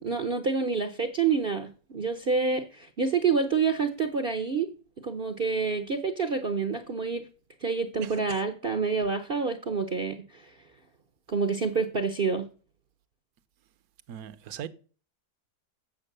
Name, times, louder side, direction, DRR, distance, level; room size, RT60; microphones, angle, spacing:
voice 1, 0.0-4.7 5.0-7.2 7.6-10.5 11.3-12.5, right 5 dB, 45° right, 0.7 m, -28 dB
voice 2, 8.0-8.4 14.1-14.7, right 9 dB, 65° right, 1.2 m, -40 dB
8.5 x 6.8 x 6.6 m
omnidirectional pair, 1.8 m